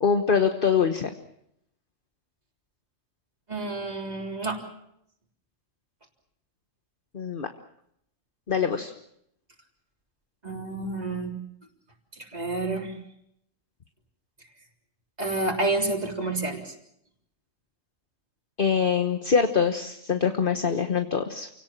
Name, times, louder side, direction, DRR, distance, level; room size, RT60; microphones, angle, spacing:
voice 1, 0.0-1.1 7.1-7.5 8.5-8.9 18.6-21.5, left 6 dB, 45° left, 7 dB, 1.3 m, -24 dB
voice 2, 3.5-4.6 10.4-11.4 12.2-12.9 15.2-16.7, right 2 dB, 30° right, 0 dB, 3.8 m, -29 dB
28.5 x 18.0 x 7.4 m, 0.77 s
omnidirectional pair, 1.3 m